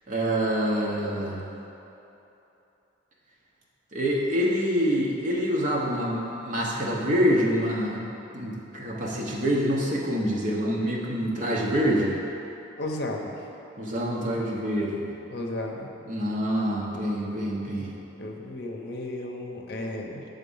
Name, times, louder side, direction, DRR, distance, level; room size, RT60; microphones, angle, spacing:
voice 1, 0.1-1.5 3.9-8.0 8.3-12.2 13.8-15.0 16.1-17.9, equal, 40° right, -4 dB, 1.0 m, -26 dB
voice 2, 12.8-13.5 15.3-15.9 18.2-20.3, left 1 dB, 55° left, 1 dB, 0.7 m, -34 dB
7.2 x 3.7 x 5.5 m, 3.0 s
head